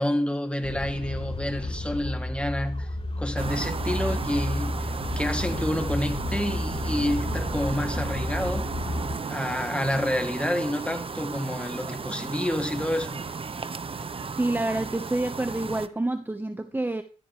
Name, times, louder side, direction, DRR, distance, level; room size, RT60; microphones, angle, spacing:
voice 1, 0.0-2.9 3.2-8.7 9.2-13.3, left 1 dB, 10° left, 2.6 m, -29 dB
sound 1, 0.6-9.2, left 2 dB, 45° left, 3.7 m, -31 dB
sound 2, 3.3-15.9, right 5 dB, 45° right, 1.0 m, -34 dB
voice 2, 14.4-17.0, right 2 dB, 15° right, 1.2 m, -28 dB
14.5 x 13.0 x 3.3 m
cardioid pair, 65°, 14 cm